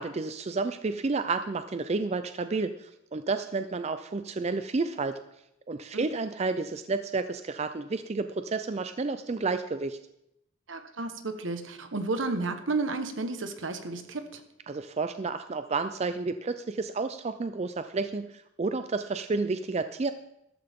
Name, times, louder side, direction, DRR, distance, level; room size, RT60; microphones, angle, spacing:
voice 1, 0.0-5.2 5.7-10.0 14.7-20.1, right 3 dB, 35° right, 10 dB, 0.4 m, -31 dB
voice 2, 10.7-14.4, right 3 dB, 75° right, 8 dB, 1.2 m, -32 dB
13.5 x 12.5 x 3.6 m, 0.82 s
head